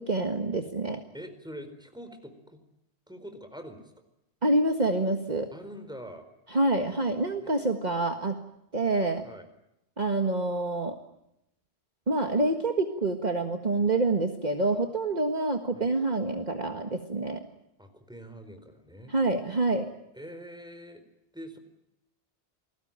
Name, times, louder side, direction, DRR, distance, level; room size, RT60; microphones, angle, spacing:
voice 1, 0.0-1.0 4.4-5.5 6.5-8.4 8.7-9.2 10.0-11.0 12.1-17.4 19.1-19.9, right 2 dB, 40° right, 5 dB, 1.9 m, -27 dB
voice 2, 1.1-2.6 3.1-3.9 5.5-6.3 7.4-7.5 9.2-9.5 15.7-15.9 17.8-19.1 20.1-21.0 21.3-21.6, equal, 5° right, 8 dB, 4.4 m, -44 dB
28.5 x 20.5 x 8.9 m, 0.83 s
omnidirectional pair, 1.1 m